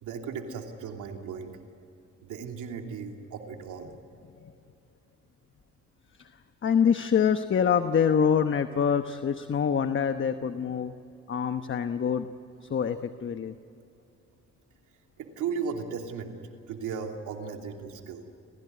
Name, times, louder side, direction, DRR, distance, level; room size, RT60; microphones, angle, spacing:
voice 1, 0.0-1.5 2.2-3.9 15.2-16.3 16.7-18.2, right 6 dB, 85° right, 3 dB, 2.9 m, -36 dB
voice 2, 6.6-10.9 11.3-12.3 12.6-13.6, left 7 dB, 40° left, 9 dB, 1.0 m, -25 dB
29.5 x 16.0 x 9.5 m, 2.7 s
cardioid pair, 90°, 30 cm